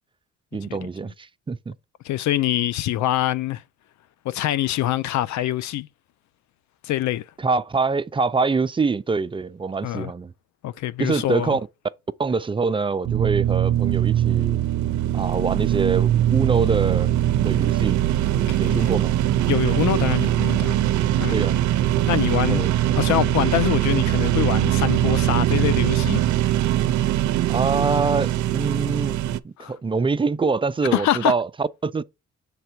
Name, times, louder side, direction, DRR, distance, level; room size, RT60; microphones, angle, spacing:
voice 1, 0.5-1.7 7.4-10.3 11.0-11.6 12.2-14.6 15.1-17.1 17.4-18.0 18.5-19.1 21.3-21.6 22.5-22.7 27.5-32.0, right 4 dB, 20° right, 0.3 m, -25 dB
voice 2, 2.0-3.6 4.2-5.9 6.8-7.2 9.8-10.1 10.6-11.6 18.5-18.9 19.5-20.9 21.2-21.5 22.1-22.6 23.0-26.2 29.6-29.7 30.9-31.3, left 13 dB, 70° left, 0.5 m, -24 dB
sound 1, 13.0-29.4, right 12 dB, 70° right, 0.5 m, -21 dB
6.6 x 3.4 x 4.5 m
cardioid pair, 90°, 30 cm